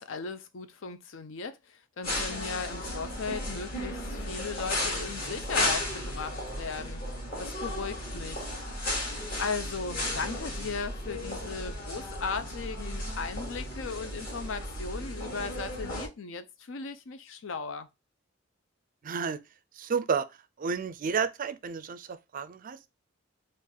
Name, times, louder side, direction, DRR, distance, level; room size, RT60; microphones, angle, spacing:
voice 1, 0.0-7.0 7.4-8.5 9.4-17.9, left 5 dB, 75° left, 0.6 m, -37 dB
sound 1, 2.0-16.1, left 1 dB, 50° left, 2.3 m, -34 dB
voice 2, 19.0-19.4 19.8-20.3 20.6-22.9, right 5 dB, 45° right, 0.4 m, -31 dB
4.5 x 2.5 x 3.7 m
head